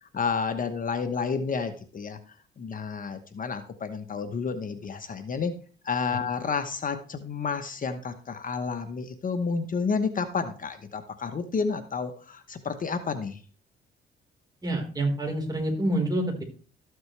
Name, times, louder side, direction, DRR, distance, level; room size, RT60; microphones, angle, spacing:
voice 1, 0.0-2.2 2.6-5.5 5.8-13.4, left 5 dB, 45° left, 9 dB, 1.1 m, -30 dB
voice 2, 14.6-16.4, right 1 dB, 20° right, 1 dB, 4.3 m, -27 dB
13.5 x 7.9 x 3.3 m, 0.40 s
cardioid pair, 90°, 20 cm